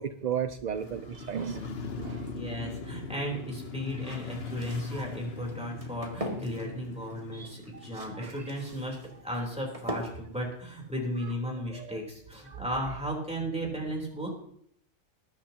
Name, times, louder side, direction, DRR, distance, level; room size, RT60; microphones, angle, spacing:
voice 1, 0.0-1.7 2.0-2.3 4.9-5.1 7.3-7.8 8.1-8.4 11.2-11.3 11.6-12.0 12.5-12.9, right 8 dB, 60° right, 10 dB, 0.4 m, -36 dB
Motorcycle, 0.7-10.8 11.1-11.2, left 4 dB, 55° left, 1.2 m, -41 dB
sound 1, 0.7-11.6, equal, 25° right, 2.0 m, -44 dB
voice 2, 2.0-9.0 9.2-14.3, equal, 5° right, -1 dB, 3.5 m, -35 dB
20.5 x 10.0 x 2.9 m, 0.67 s
omnidirectional pair, 1.3 m